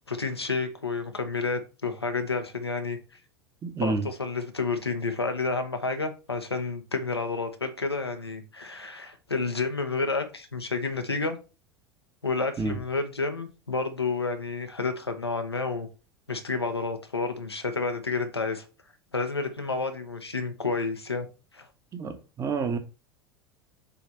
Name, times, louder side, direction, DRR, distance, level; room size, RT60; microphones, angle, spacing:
voice 1, 0.1-3.0 3.8-11.4 12.2-15.9 16.3-18.6 19.1-21.3 21.5-21.7, left 3 dB, 85° left, 1.0 m, -30 dB
voice 2, 3.6-4.1 12.6-12.8 21.9-22.8, right 4 dB, 25° right, 1.2 m, -29 dB
6.9 x 3.4 x 4.3 m
figure-of-eight pair, 75°, 13 cm